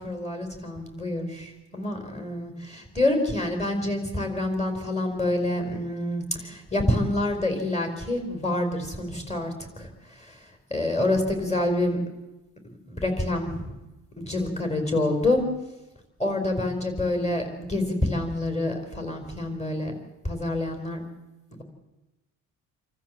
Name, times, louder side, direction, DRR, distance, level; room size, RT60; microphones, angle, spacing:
voice 1, 0.0-10.4 10.7-12.0 12.9-13.7 14.2-15.4 16.2-19.9 20.2-21.0 21.5-21.6, left 1 dB, 15° left, 6 dB, 4.7 m, -27 dB
27.0 x 14.0 x 7.7 m, 1.0 s
cardioid pair, 130°, 37 cm